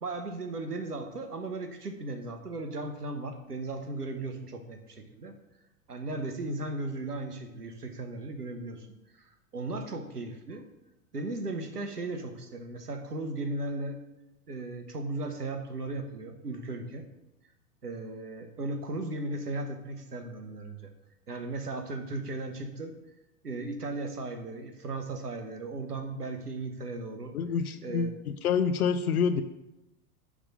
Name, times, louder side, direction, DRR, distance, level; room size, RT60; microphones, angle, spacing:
voice 1, 0.0-5.4 5.9-8.9 9.2-10.6 11.1-14.0 14.5-17.1 17.8-20.9 21.3-22.9 23.4-27.3 27.8-28.1, right 2 dB, 85° right, 7 dB, 1.2 m, -36 dB
voice 2, 27.3-28.1 28.4-29.4, left 6 dB, 70° left, 9 dB, 0.7 m, -27 dB
10.0 x 3.6 x 6.6 m, 0.93 s
figure-of-eight pair, 95°, 46 cm